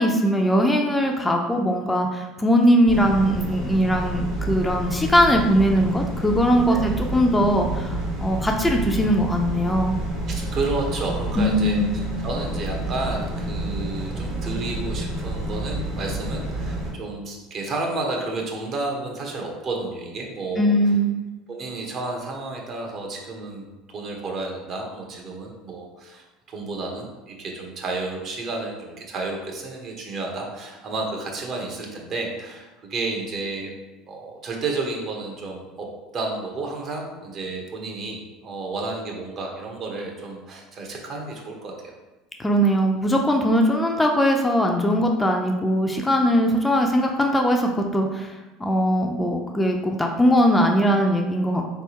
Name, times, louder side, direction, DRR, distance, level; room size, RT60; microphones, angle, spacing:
voice 1, 0.0-10.0 11.4-11.9 20.6-21.2 42.4-48.3 48.6-51.6, equal, 15° left, 2 dB, 0.5 m, -20 dB
sound 1, 2.9-16.9, right 1 dB, 85° right, 1.2 m, -29 dB
voice 2, 10.3-11.8 12.2-20.7 21.5-33.7 34.1-35.9 36.1-41.9, right 3 dB, 50° right, 1 dB, 1.1 m, -31 dB
4.0 x 3.5 x 3.0 m, 1.1 s
hypercardioid pair, 80°, 0 cm